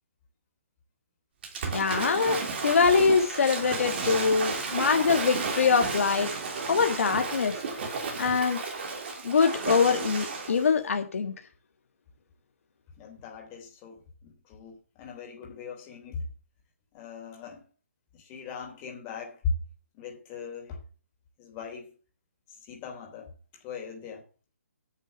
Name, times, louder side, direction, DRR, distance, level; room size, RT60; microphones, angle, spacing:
Waves surf / Splash splatter, 1.4-10.7, right 4 dB, 45° right, 3.2 m, -33 dB
voice 1, 1.7-6.3 6.7-7.5 8.2-8.6 9.2-11.3, left 5 dB, 70° left, 1.6 m, -24 dB
voice 2, 13.0-16.3 16.9-17.6 18.1-19.5 19.9-20.8 21.4-21.9 22.5-23.3 23.6-24.2, left 5 dB, 25° left, 3.2 m, -38 dB
9.3 x 6.7 x 7.3 m
hypercardioid pair, 155°, 8 cm